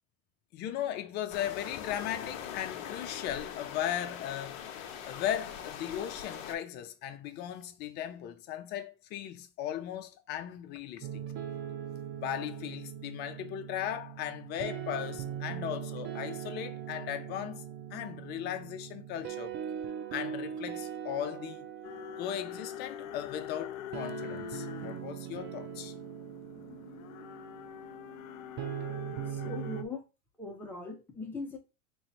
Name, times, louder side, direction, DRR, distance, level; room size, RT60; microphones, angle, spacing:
voice 1, 0.5-4.7 5.1-11.2 12.2-17.6 17.9-19.5 20.1-21.7 22.2-25.9, left 11 dB, 25° left, 0.4 m, -37 dB
sound 1, 1.3-6.5, left 8 dB, 45° left, 0.8 m, -42 dB
sound 2, 11.0-29.9, right 9 dB, 30° right, 0.5 m, -41 dB
sound 3, 21.8-29.8, left 11 dB, 75° left, 0.6 m, -45 dB
voice 2, 29.3-30.0 30.4-31.6, left 3 dB, 5° left, 0.8 m, -40 dB
3.1 x 2.6 x 4.2 m
supercardioid pair, 130°, 40 cm